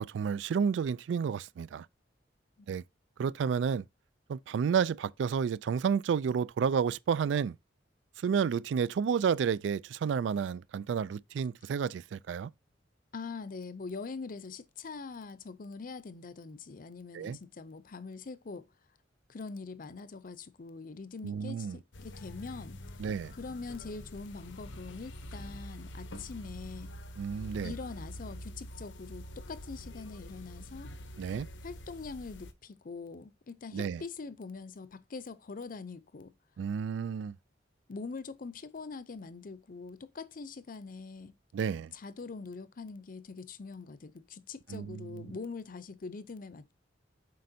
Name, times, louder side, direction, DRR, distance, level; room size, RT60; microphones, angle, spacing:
voice 1, 0.0-1.9 2.7-2.8 3.2-3.8 4.3-7.6 8.2-12.5 17.1-17.4 21.2-21.8 23.0-23.3 27.2-27.7 31.2-31.5 33.7-34.0 36.6-37.3 41.5-41.9 44.7-45.3, right 7 dB, 75° right, 0.3 m, -31 dB
voice 2, 13.1-18.6 19.3-22.8 23.4-26.9 27.6-30.9 31.6-36.3 37.9-41.3 41.9-46.7, left 4 dB, 50° left, 0.6 m, -43 dB
sound 1, 21.9-32.5, equal, 80° left, 0.8 m, -46 dB
7.6 x 5.2 x 2.7 m
head